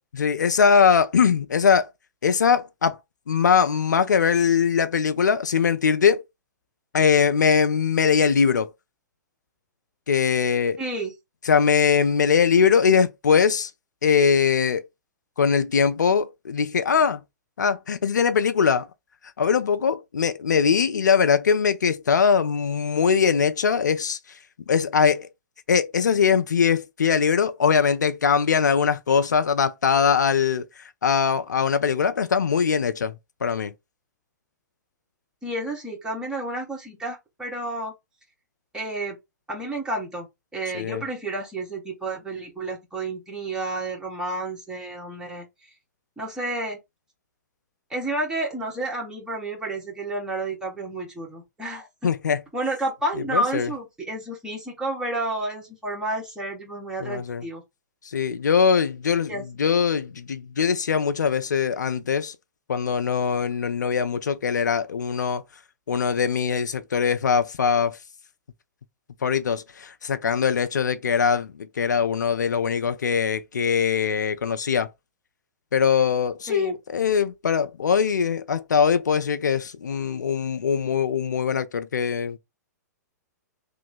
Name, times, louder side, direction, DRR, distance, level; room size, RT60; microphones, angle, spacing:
voice 1, 0.1-1.9 2.2-3.0 3.3-6.2 6.9-8.7 10.1-10.8 11.5-13.7 14.0-14.9 15.4-17.2 17.6-18.9 19.4-24.4 24.7-25.3 25.7-33.1 33.4-33.7 40.7-41.0 52.0-52.4 53.2-53.7 57.0-57.4 58.0-62.4 62.7-65.4 65.9-68.0 69.2-74.9 75.7-82.4, left 6 dB, 75° left, 0.4 m, -21 dB
voice 2, 10.8-11.1 35.4-37.9 38.7-39.2 39.5-40.3 40.5-45.4 46.2-46.8 47.9-52.1 52.5-57.6 59.3-59.5 76.5-76.8, right 2 dB, 5° right, 1.2 m, -30 dB
3.0 x 2.0 x 3.9 m
figure-of-eight pair, 115°, 10 cm